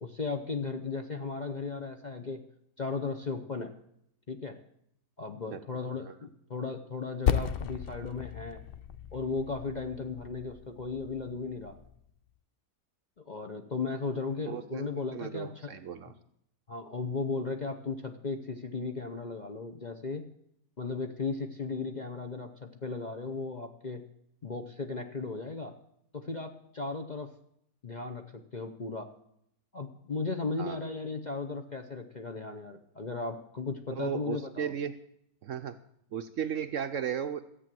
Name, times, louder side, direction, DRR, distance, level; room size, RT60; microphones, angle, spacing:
voice 1, 0.0-2.4 2.8-3.7 4.3-4.6 5.2-8.6 9.1-11.8 13.2-15.7 16.7-20.2 20.8-24.0 24.4-25.7 26.1-27.3 27.8-28.3 28.5-29.1 29.7-34.7, left 4 dB, 40° left, 5 dB, 0.7 m, -36 dB
Percussion, 7.3-12.1, left 8 dB, 90° left, 0.5 m, -35 dB
voice 2, 14.5-16.1 30.6-30.8 34.0-34.9 35.4-35.8 36.1-37.4, right 8 dB, 65° right, 9 dB, 0.9 m, -35 dB
13.5 x 8.3 x 7.5 m, 0.73 s
omnidirectional pair, 1.7 m